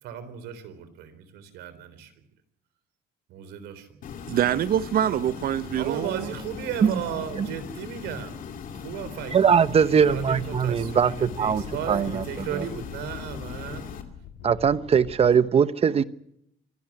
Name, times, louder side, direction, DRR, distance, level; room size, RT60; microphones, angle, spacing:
voice 1, 0.0-2.1 3.3-4.0 5.8-8.4 8.7-9.7 10.0-13.8, right 9 dB, 85° right, 3.9 m, -35 dB
sound 1, 4.0-14.0, left 6 dB, 55° left, 2.7 m, -39 dB
voice 2, 4.3-6.3, right 10 dB, 60° right, 0.9 m, -25 dB
voice 3, 9.3-12.2 12.5-12.6 14.4-16.0, right 7 dB, 35° right, 1.0 m, -21 dB
sound 2, 10.0-15.3, left 8 dB, 80° left, 2.1 m, -44 dB
26.0 x 12.0 x 9.8 m
cardioid pair, 110°, 17 cm